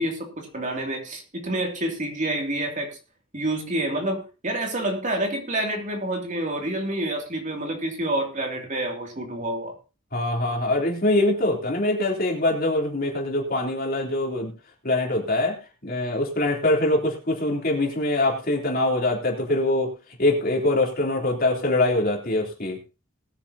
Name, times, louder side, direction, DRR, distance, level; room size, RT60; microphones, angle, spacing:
voice 1, 0.0-3.0 3.3-9.7, right 1 dB, 35° right, 2 dB, 2.7 m, -28 dB
voice 2, 10.1-14.5 14.8-15.6 15.8-19.9 20.2-22.8, left 2 dB, 45° left, 0 dB, 3.3 m, -23 dB
20.5 x 9.3 x 2.8 m, 0.32 s
head